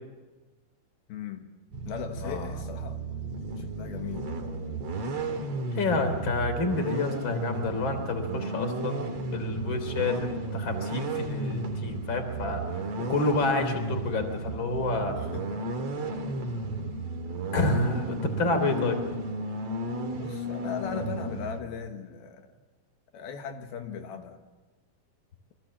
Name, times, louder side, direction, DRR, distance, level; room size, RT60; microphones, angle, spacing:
voice 1, 1.1-1.5 1.9-3.0 3.6-4.4 15.2-15.6 20.2-22.5 23.1-24.4, left 7 dB, 80° left, 5 dB, 3.3 m, -38 dB
sound 1, 1.7-21.6, right 2 dB, 45° right, 2.9 m, -34 dB
voice 2, 5.7-9.0 9.3-12.6 13.1-15.2 17.5-19.0, left 2 dB, 30° left, 7 dB, 3.9 m, -28 dB
29.5 x 23.5 x 7.4 m, 1.2 s
omnidirectional pair, 4.3 m